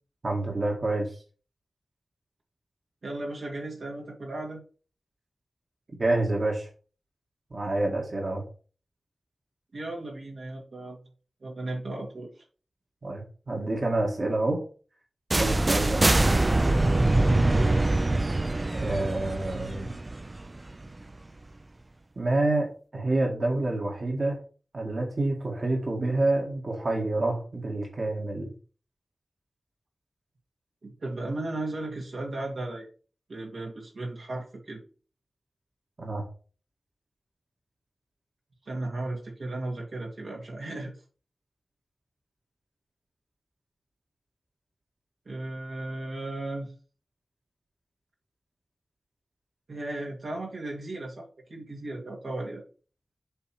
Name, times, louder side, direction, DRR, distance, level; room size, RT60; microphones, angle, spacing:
voice 1, 0.2-1.1 6.0-6.7 7.5-8.4 13.0-14.6 15.4-16.0 18.7-19.9 22.2-22.7 22.9-24.4 24.7-28.5 36.0-36.2, right 2 dB, 55° right, -1 dB, 1.9 m, -27 dB
voice 2, 3.0-4.6 9.7-11.0 11.4-12.3 17.5-17.9 30.8-32.9 33.3-34.8 38.7-40.9 45.3-46.7 49.7-52.6, right 2 dB, 80° right, -2 dB, 2.1 m, -35 dB
sound 1, 15.3-21.1, right 2 dB, 35° right, 0.4 m, -24 dB
7.9 x 3.2 x 5.9 m, 0.39 s
wide cardioid pair, 70°, 0 cm